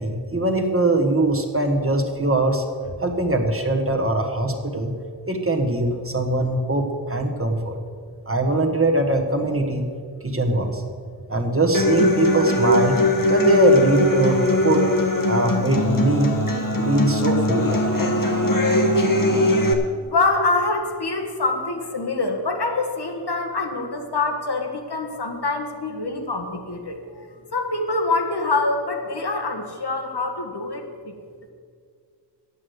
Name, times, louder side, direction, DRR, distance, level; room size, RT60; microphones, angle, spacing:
voice 1, 0.0-4.9 5.3-7.8 8.2-9.8 10.2-10.8 11.3-13.0 13.3-14.9 15.2-16.4 16.8-17.8, right 2 dB, 30° right, 3 dB, 1.5 m, -22 dB
Human voice / Acoustic guitar, 11.7-19.7, left 1 dB, 50° left, 1.5 m, -20 dB
voice 2, 20.0-27.3 27.5-31.1, left 3 dB, 70° left, 2 dB, 1.7 m, -25 dB
9.8 x 8.4 x 8.0 m, 2.1 s
wide cardioid pair, 65°, 42 cm